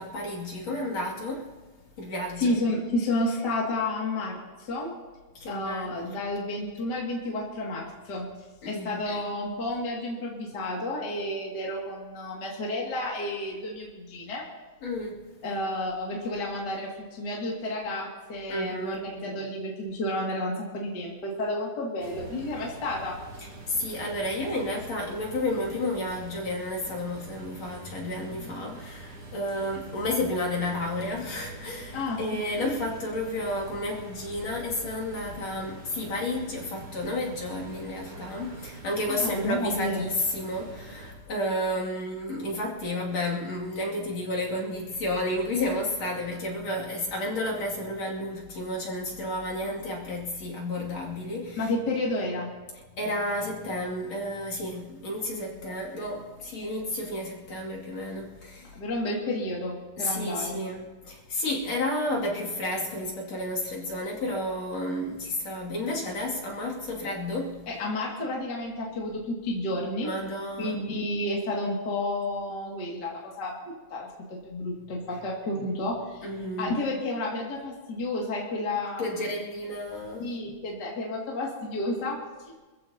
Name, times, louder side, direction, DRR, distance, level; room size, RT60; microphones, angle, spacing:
voice 1, 0.0-1.5 2.0-2.5 5.4-5.9 8.6-9.0 14.8-15.2 18.5-19.0 23.7-51.7 53.0-58.8 60.0-67.7 70.0-70.8 76.2-76.7 79.0-80.3, left 1 dB, 55° left, -4 dB, 3.7 m, -31 dB
voice 2, 2.4-4.9 5.5-8.3 8.7-14.4 15.4-23.2 31.9-32.2 32.6-32.8 39.1-40.1 51.6-52.5 58.7-60.6 67.7-70.1 70.6-73.6 73.9-76.3 76.6-79.3 80.2-82.5, left 1 dB, 35° left, -3 dB, 2.7 m, -31 dB
sound 1, 22.0-41.1, right 2 dB, 65° right, 5.2 m, -44 dB
26.5 x 15.0 x 2.9 m, 1.3 s
omnidirectional pair, 3.5 m